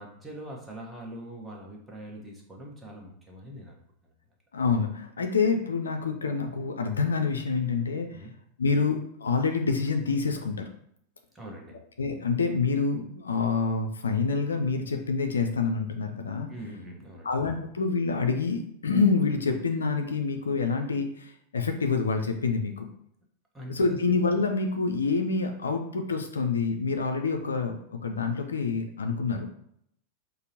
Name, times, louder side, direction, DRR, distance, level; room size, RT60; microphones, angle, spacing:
voice 1, 0.0-3.8 8.1-8.3 11.3-11.8 16.5-17.3 23.5-23.8, right 1 dB, 10° right, -2 dB, 0.9 m, -42 dB
voice 2, 4.5-8.2 8.6-10.7 12.0-16.5 17.2-22.9 23.7-29.5, left 4 dB, 70° left, 5 dB, 0.4 m, -27 dB
5.0 x 2.0 x 2.8 m, 0.70 s
figure-of-eight pair, 90°, 0 cm